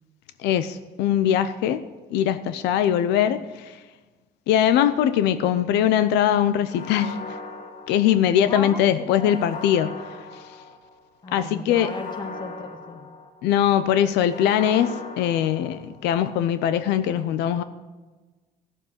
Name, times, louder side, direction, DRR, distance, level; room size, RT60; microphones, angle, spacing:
voice 1, 0.4-1.8 2.1-3.8 4.5-7.4 7.9-10.6 11.3-11.9 13.4-17.6, left 10 dB, 85° left, 12 dB, 0.6 m, -22 dB
sound 1, 6.7-8.5 9.2-11.0 11.7-13.6 14.2-16.1, left 3 dB, 50° left, 2.2 m, -39 dB
voice 2, 8.5-9.4 11.2-13.0, left 3 dB, 25° left, 5 dB, 1.8 m, -35 dB
14.5 x 7.2 x 8.0 m, 1.3 s
cardioid pair, 110°, 17 cm